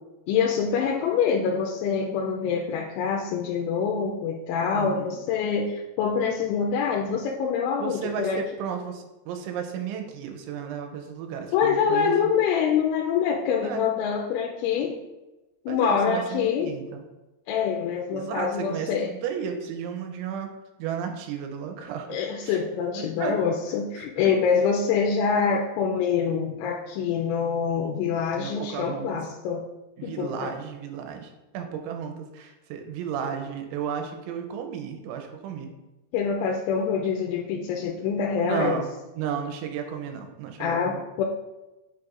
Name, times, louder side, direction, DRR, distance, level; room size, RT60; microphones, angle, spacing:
voice 1, 0.3-8.4 11.5-15.0 15.7-16.8 17.5-19.1 22.1-29.7 30.0-30.5 36.1-38.8 40.6-41.2, left 6 dB, 90° left, -1 dB, 3.0 m, -25 dB
voice 2, 4.7-5.2 7.8-12.1 13.6-13.8 15.7-17.0 18.1-20.5 20.8-22.2 22.4-22.6 22.9-23.4 24.0-24.7 28.4-29.2 30.0-35.7 38.4-38.9 39.2-41.0, right 7 dB, 90° right, 5 dB, 3.1 m, -33 dB
7.6 x 5.8 x 2.5 m, 1.0 s
omnidirectional pair, 5.3 m